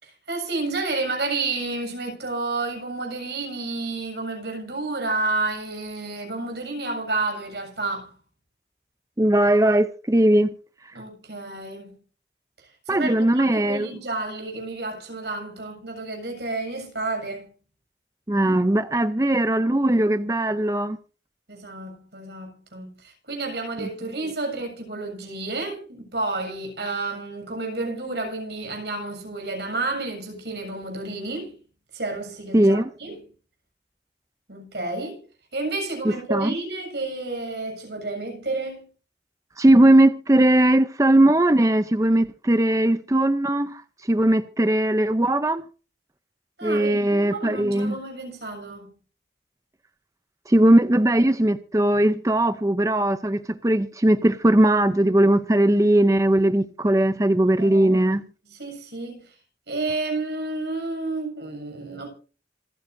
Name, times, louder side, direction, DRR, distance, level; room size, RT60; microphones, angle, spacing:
voice 1, 0.0-8.1 10.9-12.0 12.9-17.5 21.5-31.5 31.9-33.2 34.5-35.2 35.5-38.9 46.6-48.9 57.2-58.3 58.6-59.3 59.7-62.1, right 3 dB, 70° right, 7.1 m, -30 dB
voice 2, 9.2-10.5 10.8-11.0 12.9-13.9 18.3-21.0 23.8-23.9 32.5-32.9 36.3-36.6 39.6-45.6 46.6-48.0 50.5-58.2, right 1 dB, 20° right, 0.6 m, -19 dB
26.5 x 9.4 x 2.7 m
head